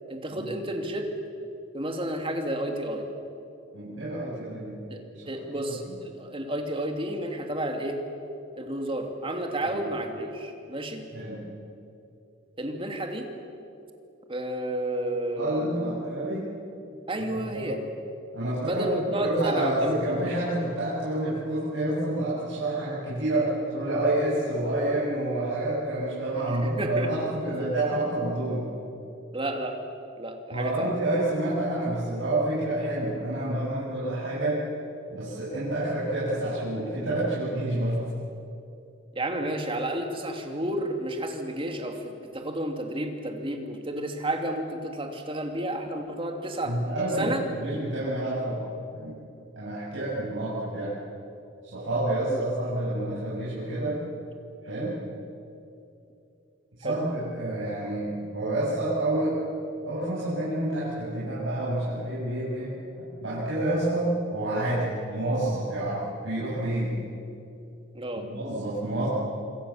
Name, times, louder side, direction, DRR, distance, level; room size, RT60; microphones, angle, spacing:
voice 1, 0.1-1.1 1.7-3.0 4.9-5.0 5.3-8.0 8.5-11.1 12.6-13.3 14.3-16.0 17.1-17.8 18.6-20.0 26.4-27.1 29.3-29.8 30.2-30.9 39.1-46.8 47.2-47.4 52.3-52.4 56.8-57.0 67.9-68.3, right 1 dB, 25° right, 4 dB, 2.7 m, -31 dB
voice 2, 3.7-4.8 5.2-6.0 9.6-9.8 11.1-11.4 15.4-16.5 17.3-17.8 18.3-28.7 30.5-34.7 35.1-38.0 46.6-48.6 48.9-49.2 49.6-50.9 51.6-54.0 54.6-55.0 56.8-59.4 59.8-67.0 68.1-69.1, right 1 dB, 80° right, -9 dB, 7.5 m, -28 dB
26.5 x 26.0 x 7.4 m, 2.7 s
head